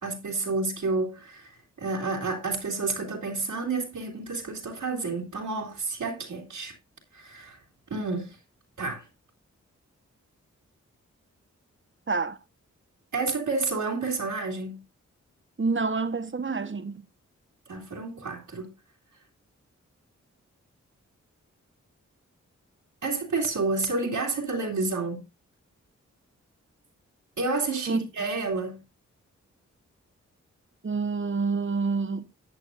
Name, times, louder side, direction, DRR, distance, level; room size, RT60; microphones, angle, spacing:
voice 1, 0.0-6.7 7.1-7.6 7.9-8.4 8.8-9.1 13.1-14.8 17.7-18.7 23.0-25.2 27.4-28.8, right 3 dB, 75° right, 2.9 m, -30 dB
voice 2, 12.1-12.4 15.6-17.0 27.9-28.0 30.8-32.2, right 4 dB, 40° right, 1.3 m, -27 dB
13.5 x 8.3 x 2.6 m
cardioid pair, 40°, 31 cm